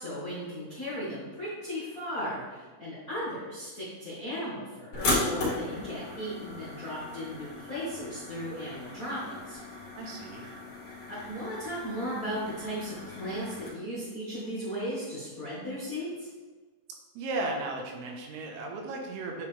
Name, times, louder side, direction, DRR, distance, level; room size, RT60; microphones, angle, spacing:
voice 1, 0.0-9.6 11.1-16.3, equal, 70° left, -10 dB, 0.8 m, -36 dB
sound 1, 4.9-13.7, left 2 dB, 45° left, 3.2 m, -36 dB
voice 2, 10.0-10.5 17.2-19.5, right 2 dB, 85° right, 1 dB, 3.0 m, -35 dB
9.4 x 5.0 x 3.4 m, 1.3 s
omnidirectional pair, 4.5 m